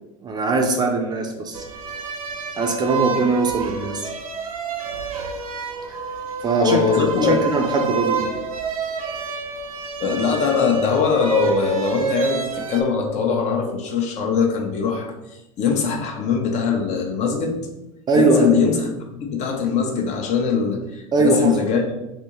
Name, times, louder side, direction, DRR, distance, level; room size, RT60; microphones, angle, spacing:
voice 1, 0.2-1.6 2.6-4.1 5.9-6.0 6.4-8.5 18.1-18.5 21.1-21.5, right 3 dB, 25° right, 3 dB, 0.4 m, -21 dB
sound 1, 1.5-12.8, right 6 dB, 85° right, 0.5 m, -29 dB
voice 2, 6.6-7.5 10.0-17.6 18.1-21.9, left 5 dB, 40° left, 2 dB, 0.6 m, -21 dB
3.4 x 2.6 x 2.9 m, 0.96 s
hypercardioid pair, 90°, 18 cm